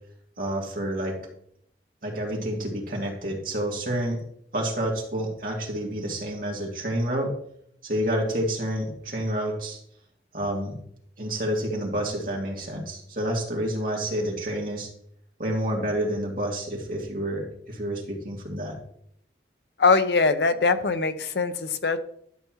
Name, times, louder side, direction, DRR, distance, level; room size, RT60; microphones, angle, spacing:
voice 1, 0.4-1.2 2.0-4.2 4.5-7.4 7.8-9.8 10.3-10.8 11.2-14.9 15.4-18.7, right 1 dB, 50° right, -2 dB, 2.3 m, -29 dB
voice 2, 19.8-22.0, left 4 dB, 70° left, 10 dB, 0.7 m, -22 dB
12.0 x 6.9 x 3.0 m, 0.68 s
head